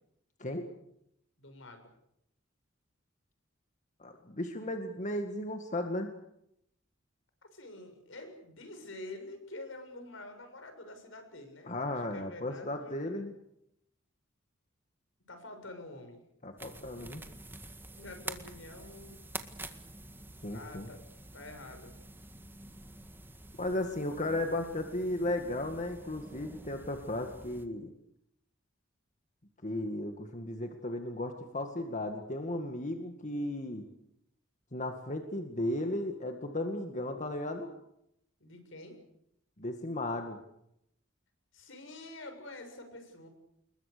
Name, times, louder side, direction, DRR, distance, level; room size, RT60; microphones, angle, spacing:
voice 1, 0.4-0.7 4.0-6.1 11.7-13.3 16.4-17.2 20.4-20.9 23.6-27.9 29.6-33.9 34.7-37.7 39.6-40.4, left 1 dB, 40° left, 5 dB, 1.9 m, -35 dB
voice 2, 1.4-1.9 7.5-13.2 15.3-16.2 18.0-19.2 20.5-21.0 21.3-21.9 38.4-39.0 41.5-43.3, left 2 dB, 75° left, 6 dB, 6.8 m, -47 dB
sound 1, 16.6-27.7, right 2 dB, 10° right, 1.8 m, -48 dB
28.5 x 22.0 x 6.8 m, 0.78 s
head